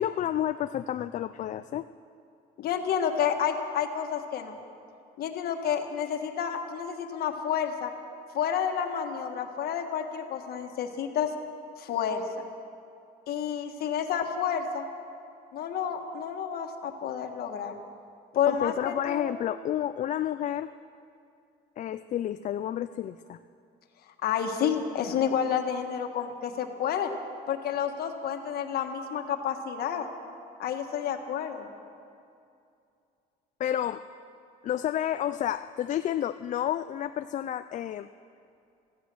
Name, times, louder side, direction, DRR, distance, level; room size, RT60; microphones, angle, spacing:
voice 1, 0.0-1.8 18.5-20.7 21.8-23.4 33.6-34.0 34.6-38.1, left 11 dB, 45° left, 11 dB, 0.4 m, -30 dB
voice 2, 2.6-4.6 5.2-7.9 8.3-11.3 11.8-12.2 13.3-14.9 15.5-17.7 18.3-19.3 24.2-27.1 27.5-30.1 30.6-31.7, left 8 dB, 65° left, 5 dB, 1.5 m, -30 dB
16.0 x 14.5 x 6.2 m, 2.5 s
cardioid pair, 110°, 17 cm